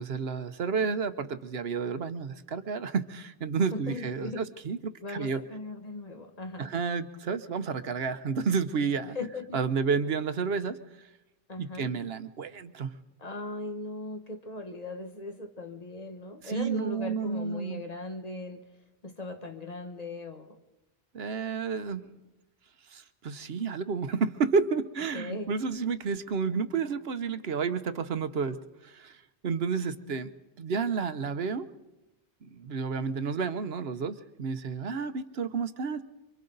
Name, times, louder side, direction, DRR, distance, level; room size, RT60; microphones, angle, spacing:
voice 1, 0.0-5.4 6.6-9.2 9.5-10.8 11.6-12.9 16.4-17.8 21.1-22.1 22.9-28.6 28.8-30.3 30.6-31.7 32.4-36.0, right 5 dB, 80° right, 11 dB, 1.1 m, -31 dB
voice 2, 3.7-4.4 5.0-6.7 9.1-9.6 11.5-11.9 13.2-18.6 19.0-20.5 25.1-25.5, left 2 dB, 40° left, 5 dB, 1.4 m, -38 dB
27.5 x 24.0 x 3.9 m, 0.99 s
omnidirectional pair, 1.0 m